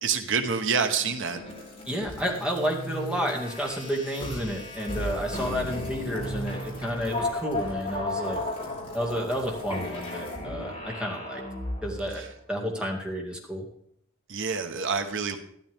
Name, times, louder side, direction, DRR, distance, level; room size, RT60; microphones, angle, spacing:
voice 1, 0.0-1.4 12.1-12.3 14.3-15.4, right 6 dB, 65° right, 6 dB, 1.1 m, -27 dB
sound 1, 0.8-12.1, left 1 dB, 30° left, 4.2 m, -35 dB
voice 2, 1.9-8.4 8.9-11.4 11.8-13.6, equal, 5° right, -1 dB, 2.2 m, -31 dB
13.0 x 12.5 x 3.6 m, 0.68 s
head